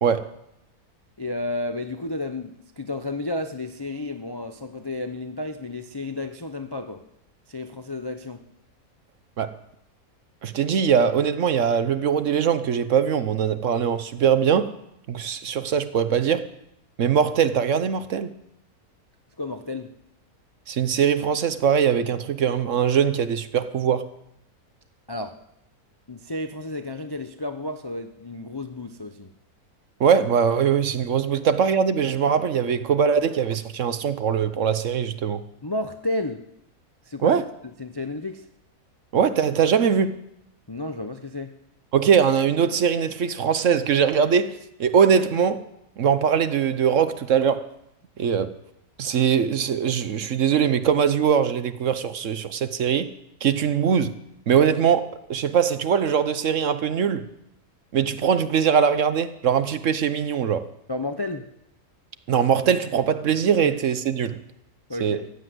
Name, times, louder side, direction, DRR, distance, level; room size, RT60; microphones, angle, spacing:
voice 1, 0.0-0.3 9.4-9.5 10.4-14.7 15.1-16.5 17.0-18.3 20.7-24.1 30.0-35.4 37.2-37.5 39.1-40.2 41.9-45.6 46.0-47.7 48.2-48.5 49.0-53.1 53.4-54.1 54.5-57.3 57.9-60.6 62.3-64.4 65.0-65.2, right 7 dB, 60° right, 1.1 m, -21 dB
voice 2, 1.2-7.0 7.5-8.4 19.4-19.9 25.1-25.3 26.1-29.3 35.6-36.4 37.1-37.4 37.8-38.5 40.7-41.5 60.9-61.5 64.9-65.2, left 2 dB, 30° left, 0.4 m, -32 dB
15.0 x 10.0 x 7.8 m
omnidirectional pair, 1.6 m